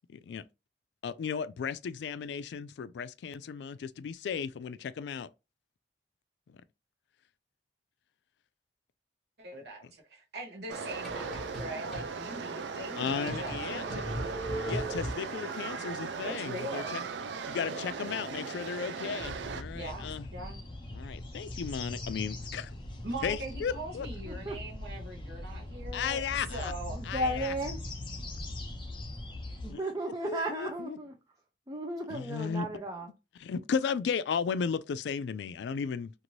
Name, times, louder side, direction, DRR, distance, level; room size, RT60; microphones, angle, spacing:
voice 1, 0.1-0.4 1.0-5.3 6.5-6.6 12.9-13.8 14.7-17.0 17.5-20.3 20.9-22.7 23.2-24.1 25.9-26.7 27.1-27.5 29.7-29.8 30.2-31.0 32.1-32.7 33.4-36.1, left 6 dB, 75° left, 0.3 m, -35 dB
voice 2, 9.4-14.0 16.2-17.1 17.7-18.0 19.7-20.6 23.0-27.0, right 1 dB, 65° right, 0.9 m, -42 dB
sound 1, 10.7-12.1 12.6-12.7 13.1-15.5, right 1 dB, ahead, 1.1 m, -38 dB
sound 2, 10.7-19.6, right 5 dB, 85° right, 0.4 m, -38 dB
sound 3, 19.2-29.7, left 1 dB, 30° left, 0.7 m, -41 dB
voice 3, 26.9-27.8 29.6-31.1 31.7-33.1, right 1 dB, 20° right, 0.5 m, -34 dB
2.6 x 2.5 x 3.0 m
head